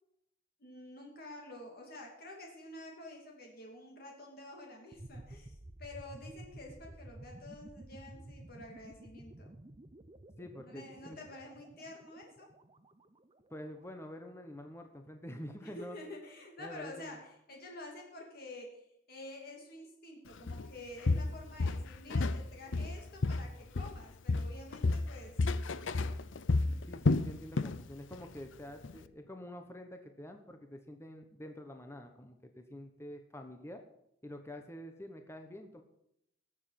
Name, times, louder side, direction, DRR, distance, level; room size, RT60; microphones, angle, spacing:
voice 1, 0.6-9.5 10.6-12.5 15.6-25.4 25.6-26.2 26.6-26.9, left 1 dB, 55° left, 0 dB, 2.7 m, -49 dB
sound 1, 4.9-13.8, right 1 dB, 30° right, 0.8 m, -52 dB
voice 2, 10.4-11.2 13.5-16.0 16.6-17.2 26.9-33.8 34.2-35.8, left 1 dB, 15° left, 5 dB, 1.1 m, -47 dB
Walk footsteps, 20.5-20.7 21.1-22.4 22.7-24.0 24.3-27.8 28.1-28.4 28.8-28.9, left 3 dB, 85° left, 0.6 m, -31 dB
18.5 x 7.4 x 5.9 m, 0.79 s
head